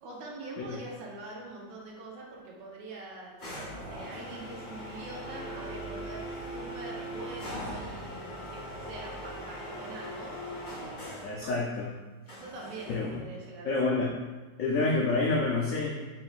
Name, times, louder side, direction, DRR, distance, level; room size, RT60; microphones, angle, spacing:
voice 1, 0.0-10.3 11.4-11.5 12.3-14.0, right 2 dB, 75° right, -3 dB, 1.4 m, -44 dB
sound 1, 3.4-11.4 12.3-13.2, equal, 60° left, 1.9 m, -40 dB
voice 2, 11.2-11.9 12.9-13.2 13.6-14.1 14.6-15.9, left 3 dB, 80° left, -4 dB, 0.7 m, -28 dB
4.5 x 3.1 x 2.4 m, 1.3 s
omnidirectional pair, 2.0 m